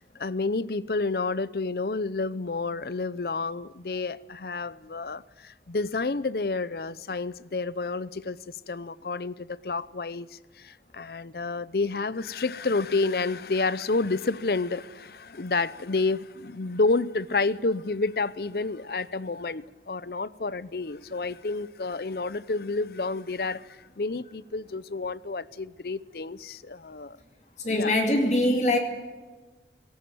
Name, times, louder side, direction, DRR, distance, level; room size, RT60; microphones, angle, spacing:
voice 1, 0.0-27.2 27.7-28.0, left 3 dB, 60° left, 0.7 m, -30 dB
voice 2, 27.6-28.8, left 1 dB, 40° left, 2.4 m, -23 dB
18.5 x 17.5 x 9.4 m
head